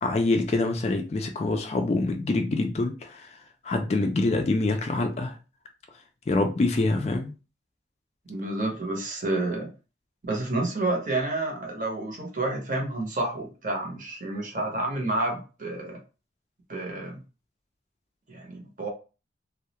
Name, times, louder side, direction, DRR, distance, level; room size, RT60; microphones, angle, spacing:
voice 1, 0.0-3.4 3.6-5.4 6.3-7.3, left 2 dB, 35° left, 0.3 m, -25 dB
voice 2, 8.3-9.7 10.2-16.0 16.7-17.2 18.3-18.9, right 2 dB, 45° right, 0.7 m, -29 dB
2.3 x 2.0 x 2.8 m
head